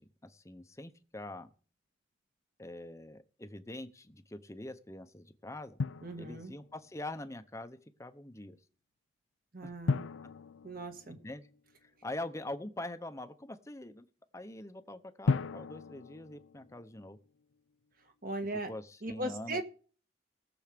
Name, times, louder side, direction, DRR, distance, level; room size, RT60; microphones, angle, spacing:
voice 1, 0.0-1.5 2.6-5.8 6.1-8.6 11.1-11.5 11.8-14.0 14.3-17.2 18.7-19.6, left 1 dB, 15° left, 10 dB, 0.8 m, -44 dB
Drum, 5.8-6.9 9.9-11.7 15.3-17.3, left 4 dB, 85° left, 0.5 m, -36 dB
voice 2, 6.0-6.5 9.5-10.1 10.6-11.2 18.2-18.7 19.0-19.6, right 1 dB, 50° right, 6 dB, 1.7 m, -38 dB
19.0 x 7.1 x 5.1 m, 0.42 s
head